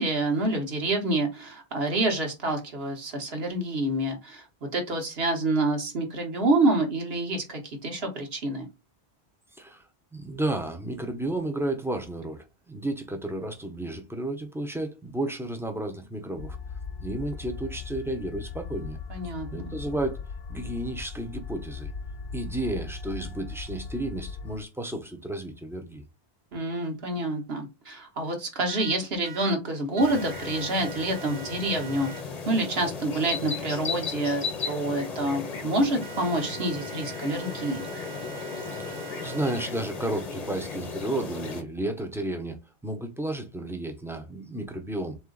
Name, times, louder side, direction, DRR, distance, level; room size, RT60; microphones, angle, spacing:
voice 1, 0.0-8.7 19.1-19.7 26.5-37.9, right 2 dB, 70° right, 1.4 m, -27 dB
voice 2, 10.1-16.6 17.0-19.0 19.5-20.2 20.5-21.9 22.3-26.0 38.8-45.2, right 1 dB, 5° right, 0.6 m, -32 dB
sound 1, 16.4-24.6, left 5 dB, 70° left, 0.8 m, -38 dB
sound 2, 28.7-29.5 30.0-32.2 36.0-39.7, right 9 dB, 55° right, 0.5 m, -44 dB
sound 3, 30.0-41.6, left 5 dB, 40° left, 0.9 m, -36 dB
3.8 x 3.0 x 3.8 m
omnidirectional pair, 1.1 m